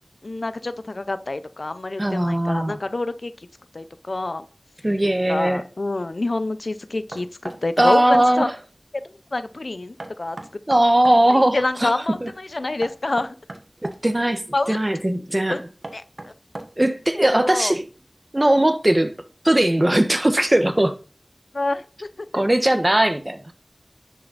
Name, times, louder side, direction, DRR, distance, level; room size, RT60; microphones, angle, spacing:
voice 1, 0.2-3.3 3.7-4.4 5.3-8.5 9.3-10.4 11.3-13.3 14.5-14.8 15.5-15.6 15.9-16.0 17.2-17.7 21.5-22.1 22.3-22.4, left 2 dB, 85° left, 0.6 m, -27 dB
voice 2, 2.0-2.8 4.8-5.6 7.8-8.6 10.7-11.9 12.2-12.3 13.8-14.4 14.7-15.7 16.8-17.9 18.3-19.1 19.4-20.9 22.3-23.5, right 1 dB, 35° right, 1.4 m, -19 dB
Knock, 7.1-8.3 10.0-11.2 12.8-14.0 15.5-16.9, right 2 dB, 65° right, 1.3 m, -37 dB
10.0 x 6.6 x 4.1 m
wide cardioid pair, 40°, 0 cm